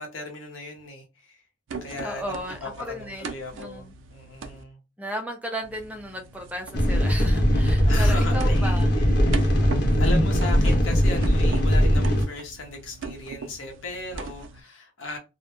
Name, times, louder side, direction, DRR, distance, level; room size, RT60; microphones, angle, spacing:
voice 1, 0.0-1.4 1.8-4.8 7.9-9.6 10.0-15.2, left 2 dB, 90° left, 0.7 m, -37 dB
sound 1, 1.7-4.6 5.6-14.6, right 4 dB, 80° right, 0.4 m, -40 dB
voice 2, 2.0-3.3 3.5-3.9 5.0-8.9 9.8-9.9, equal, 5° right, 0.4 m, -35 dB
sound 2, 6.7-12.2, equal, 55° left, 0.5 m, -20 dB
2.1 x 2.0 x 3.0 m
head